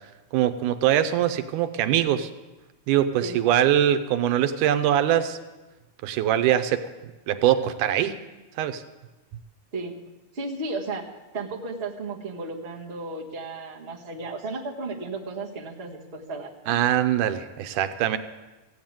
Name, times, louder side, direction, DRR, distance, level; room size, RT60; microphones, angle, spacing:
voice 1, 0.3-2.3 2.9-5.4 6.0-6.9 7.3-8.2 8.6-8.8 16.7-18.2, right 11 dB, 90° right, 10 dB, 2.3 m, -22 dB
voice 2, 9.7-10.0 10.3-11.0 11.3-16.8, right 3 dB, 25° right, -2 dB, 1.3 m, -34 dB
16.0 x 8.0 x 9.0 m, 1.1 s
omnidirectional pair, 3.6 m